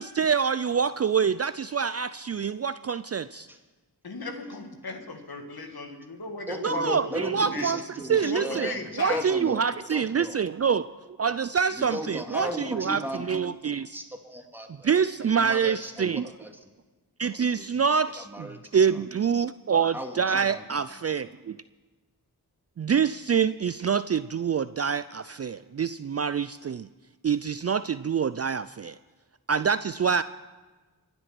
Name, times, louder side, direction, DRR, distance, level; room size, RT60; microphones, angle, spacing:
voice 1, 0.0-3.5 6.6-7.8 8.1-8.7 9.0-10.9 11.2-13.0 13.3-14.0 14.8-16.3 17.2-18.5 18.7-21.6 22.8-26.9 27.2-29.0 29.5-30.2, right 6 dB, 40° right, 15 dB, 0.4 m, -26 dB
voice 2, 4.0-7.7 8.2-9.2, left 3 dB, 70° left, 4 dB, 1.9 m, -36 dB
voice 3, 6.5-10.4 11.7-13.5 13.9-15.0 15.2-16.7 17.5-17.8 18.2-19.0 19.9-20.9, equal, 5° right, 2 dB, 2.4 m, -36 dB
23.5 x 8.2 x 6.0 m, 1.3 s
cardioid pair, 40°, 39 cm